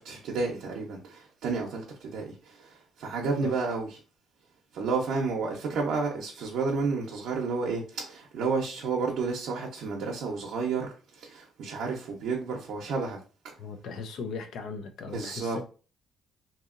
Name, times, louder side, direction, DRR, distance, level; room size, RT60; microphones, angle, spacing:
voice 1, 0.0-3.9 4.7-13.2 15.1-15.6, right 4 dB, 75° right, 0.6 m, -31 dB
voice 2, 13.6-15.6, left 5 dB, 70° left, 0.5 m, -38 dB
2.7 x 2.7 x 2.5 m
cardioid pair, 85°, 0 cm